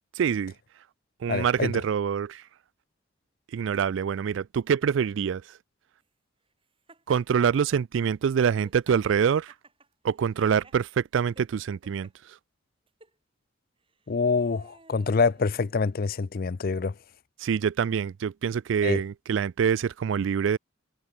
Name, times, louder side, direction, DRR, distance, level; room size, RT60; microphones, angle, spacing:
voice 1, 0.2-0.5 1.2-2.4 3.5-5.4 7.1-9.5 10.0-12.1 17.4-20.6, right 7 dB, 70° right, 0.3 m, -25 dB
voice 2, 1.3-1.7 14.1-16.9 18.8-19.0, left 4 dB, 45° left, 0.5 m, -26 dB
Laughter, 6.9-7.6 8.4-10.8 11.4-12.1 12.9-13.2 13.9-16.1, right 3 dB, 25° right, 3.3 m, -55 dB
head